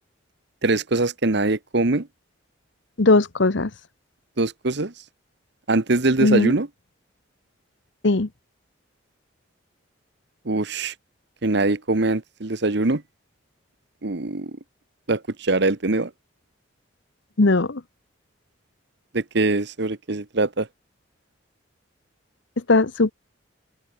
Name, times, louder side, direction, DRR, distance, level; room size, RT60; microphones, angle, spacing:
voice 1, 0.6-2.1 4.4-4.9 5.7-6.7 10.4-10.9 11.4-13.0 14.0-14.6 15.1-16.1 19.1-20.7, right 2 dB, 55° right, 1.2 m, -22 dB
voice 2, 3.0-3.7 6.2-6.5 8.0-8.3 17.4-17.8 22.7-23.1, left 2 dB, 60° left, 1.0 m, -18 dB
head